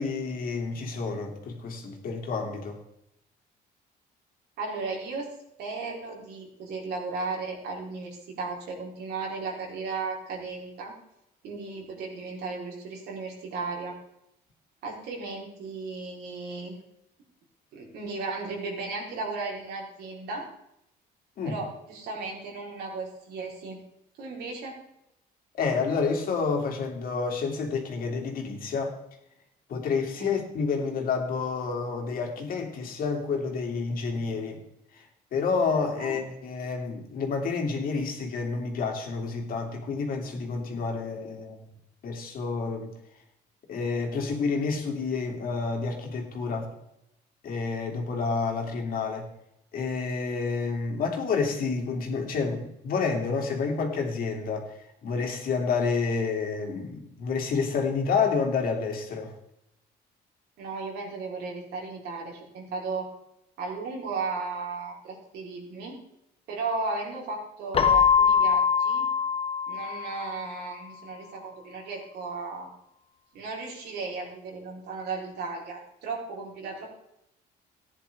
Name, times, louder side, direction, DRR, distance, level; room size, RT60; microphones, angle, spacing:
voice 1, 0.0-2.8 21.4-21.6 25.5-29.0 29.7-34.6 34.9-41.7 42.0-42.9 43.7-46.7 47.4-49.3 49.7-59.3, left 4 dB, 60° left, 2 dB, 2.7 m, -29 dB
voice 2, 4.6-5.3 5.6-10.9 11.4-14.0 14.8-16.8 17.7-20.5 21.4-23.8 24.2-24.8 30.2-30.3 36.0-36.2 60.6-63.1 63.6-66.0 66.5-69.1 69.7-72.7 73.3-76.9, right 4 dB, 75° right, -1 dB, 4.0 m, -35 dB
Keyboard (musical), 67.7-70.5, left 7 dB, 35° left, 0.8 m, -23 dB
15.0 x 10.0 x 3.6 m, 0.82 s
cardioid pair, 110°, 17 cm